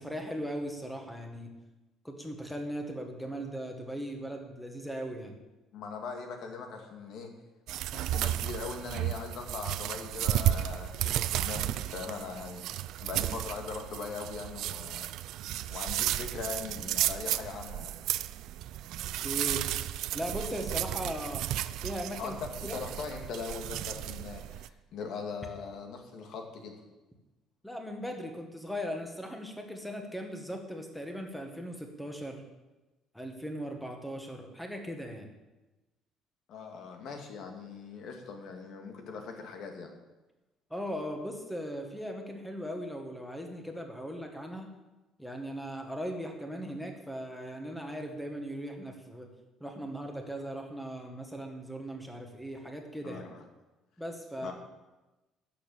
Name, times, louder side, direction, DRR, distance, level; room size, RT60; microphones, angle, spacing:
voice 1, 0.0-1.5 2.0-5.4 19.2-19.7 20.1-21.5 21.8-22.4 22.6-22.8 27.6-32.4 33.1-35.3 40.7-44.7 45.2-49.3 49.6-53.2 54.0-54.5, equal, ahead, 3 dB, 1.8 m, -38 dB
voice 2, 5.7-7.3 7.9-12.6 13.0-15.1 15.7-18.0 22.2-26.8 36.5-39.9 53.0-53.4 54.4-54.5, left 5 dB, 55° left, 3 dB, 2.3 m, -40 dB
sound 1, 7.7-24.7, right 13 dB, 65° right, 0.5 m, -33 dB
13.0 x 7.0 x 8.6 m, 1.1 s
cardioid pair, 155°, 0 cm